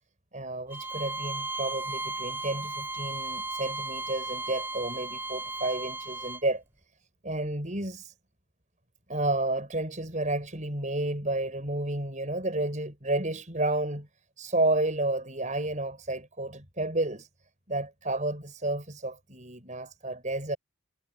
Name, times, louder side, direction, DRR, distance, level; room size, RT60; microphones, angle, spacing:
voice 1, 0.3-6.6 7.2-8.1 9.1-14.1 14.4-17.3 17.7-20.6, right 2 dB, 35° right, 6.6 m, -31 dB
Bowed string instrument, 0.7-6.4, right 2 dB, 10° right, 6.4 m, -35 dB
head